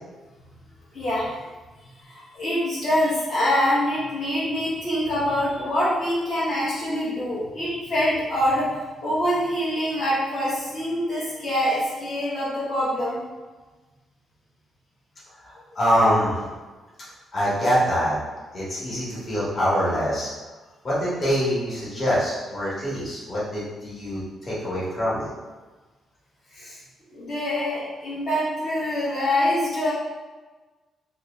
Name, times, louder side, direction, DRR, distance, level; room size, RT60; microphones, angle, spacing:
voice 1, 0.9-1.4 2.0-13.2 26.5-26.8 27.1-29.9, equal, 55° left, -11 dB, 1.2 m, -25 dB
voice 2, 15.4-16.5 17.3-18.1 18.5-20.3 20.8-25.3, equal, 35° left, -9 dB, 1.4 m, -24 dB
3.1 x 3.0 x 3.5 m, 1.3 s
cardioid pair, 170°, 0 cm